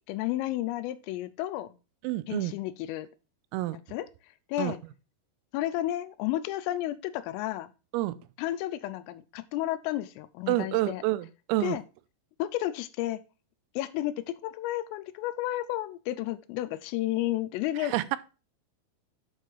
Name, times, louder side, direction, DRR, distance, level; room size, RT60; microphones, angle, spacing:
voice 1, 0.1-1.8 2.3-3.1 3.9-4.1 4.5-4.8 5.5-7.7 8.4-11.0 11.6-11.8 12.4-13.2 13.8-18.0, left 14 dB, 85° left, 13 dB, 3.2 m, -32 dB
voice 2, 2.0-2.6 3.5-3.8 4.6-4.7 7.9-8.2 10.5-11.8 17.8-18.2, right 17 dB, 90° right, 15 dB, 3.3 m, -28 dB
8.5 x 6.5 x 3.2 m, 0.32 s
omnidirectional pair, 5.9 m